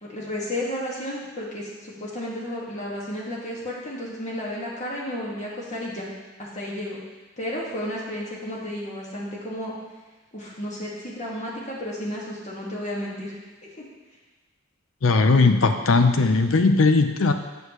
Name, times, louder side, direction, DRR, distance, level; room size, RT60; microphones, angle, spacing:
voice 1, 0.0-6.1 6.4-7.0 7.4-9.7 10.3-13.3, left 1 dB, 35° left, -5 dB, 1.9 m, -32 dB
voice 2, 15.0-17.3, left 3 dB, 80° left, 7 dB, 0.6 m, -18 dB
8.2 x 6.9 x 3.1 m, 1.2 s
head